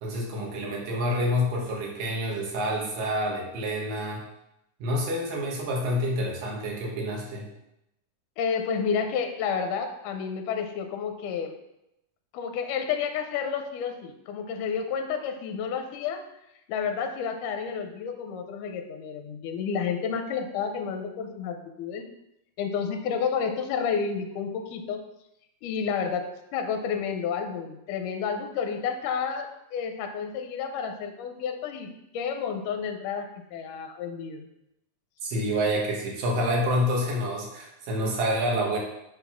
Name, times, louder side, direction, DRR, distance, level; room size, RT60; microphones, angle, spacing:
voice 1, 0.0-4.2 4.8-7.5 35.2-38.8, equal, 85° right, -2 dB, 3.1 m, -28 dB
voice 2, 8.4-11.6 12.3-16.2 16.7-22.1 22.6-25.0 25.6-34.5, left 6 dB, 85° left, 5 dB, 2.2 m, -30 dB
7.2 x 4.0 x 5.6 m, 0.86 s
omnidirectional pair, 3.8 m